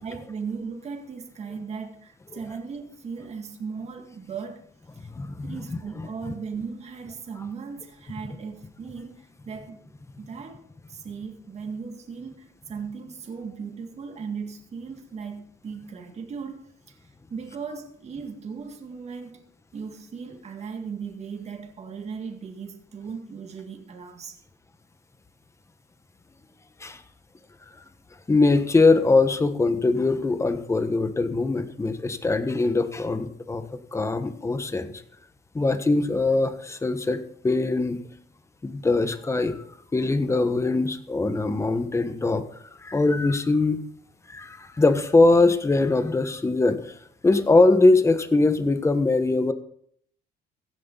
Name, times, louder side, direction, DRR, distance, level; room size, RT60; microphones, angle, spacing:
voice 1, 0.0-4.6 4.9-5.1 5.4-9.8 10.2-19.4 19.7-24.4, right 5 dB, 40° right, 3 dB, 2.0 m, -37 dB
voice 2, 5.2-5.5 6.0-6.1 26.8-27.0 28.3-33.6 33.9-35.0 35.5-38.0 38.6-39.6 39.9-42.4 42.8-43.8 44.3-46.9 47.2-49.5, left 3 dB, 15° left, 9 dB, 1.3 m, -22 dB
15.5 x 9.8 x 4.0 m, 0.63 s
cardioid pair, 110°, 17 cm